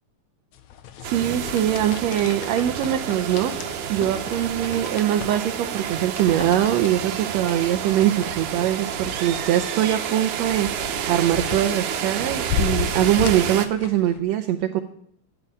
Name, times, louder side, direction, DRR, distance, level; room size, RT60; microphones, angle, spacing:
sound 1, 0.5-14.2, left 9 dB, 70° left, 2.3 m, -35 dB
voice 1, 1.0-14.8, right 11 dB, 75° right, 5 dB, 1.8 m, -22 dB
sound 2, 1.0-13.7, right 8 dB, 90° right, 2.7 m, -29 dB
12.5 x 8.5 x 8.8 m, 0.68 s
omnidirectional pair, 3.4 m